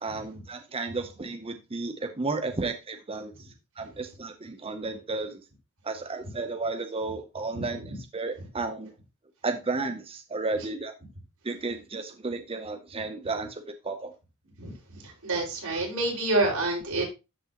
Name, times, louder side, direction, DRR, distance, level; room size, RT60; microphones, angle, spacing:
voice 1, 0.0-3.5 3.8-5.4 5.8-8.9 9.4-10.9 11.4-14.1, right 3 dB, 25° right, 8 dB, 0.6 m, -33 dB
voice 2, 15.0-17.0, right 2 dB, 85° right, -2 dB, 5.2 m, -27 dB
12.5 x 6.0 x 2.9 m, 0.27 s
head